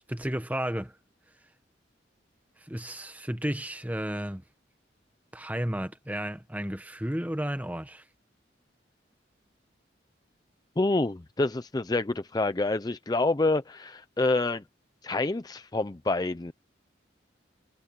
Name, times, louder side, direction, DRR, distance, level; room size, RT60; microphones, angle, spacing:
voice 1, 0.1-1.0 2.6-4.4 5.3-8.0, equal, 10° right, 1.3 m, -33 dB
voice 2, 10.8-14.6 15.0-16.5, left 2 dB, 20° left, 0.5 m, -27 dB
head